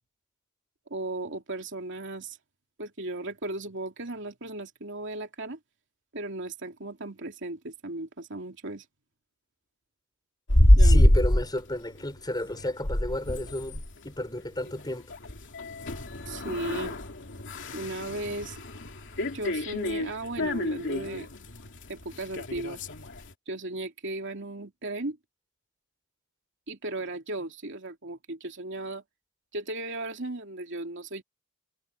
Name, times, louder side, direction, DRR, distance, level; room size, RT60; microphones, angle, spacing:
voice 1, 0.9-2.4 2.8-5.6 6.1-8.8 10.8-11.0 16.3-17.0 17.7-18.6 19.2-21.3 21.9-22.9 23.5-25.2 26.7-29.0 29.5-31.2, right 2 dB, 55° right, 2.9 m, -36 dB
sound 1, 10.5-11.5 12.0-12.2 12.5-23.3, left 1 dB, 60° left, 2.7 m, -25 dB
voice 2, 10.8-15.1, left 1 dB, 20° left, 6.7 m, -33 dB
head